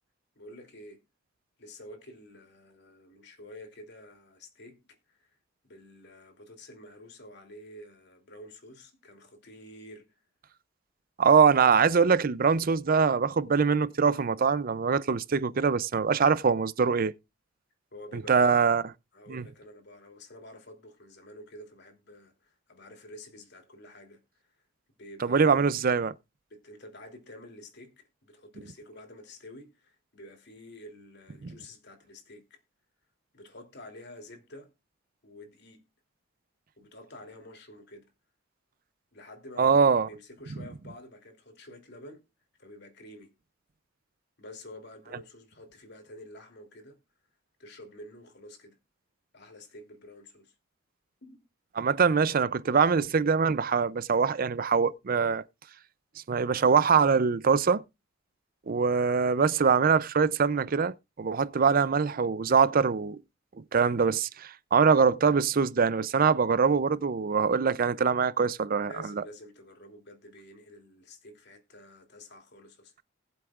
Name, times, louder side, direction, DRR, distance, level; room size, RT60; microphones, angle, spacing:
voice 1, 0.4-1.0 1.6-5.3 5.6-10.2 17.9-18.6 19.1-24.5 25.0-25.7 26.5-32.6 33.3-34.7 35.2-35.8 36.8-38.1 39.1-42.2 42.6-43.3 44.4-47.0 47.6-48.8 49.3-50.5 51.2-51.4 68.8-72.9, left 1 dB, 55° left, 3.0 m, -49 dB
voice 2, 11.2-17.1 18.3-18.8 19.3-19.4 25.2-26.1 31.4-31.5 39.6-40.1 51.8-55.4 56.3-57.8 58.7-63.2 63.7-69.2, right 5 dB, 45° right, 0.5 m, -23 dB
20.0 x 7.8 x 2.4 m
head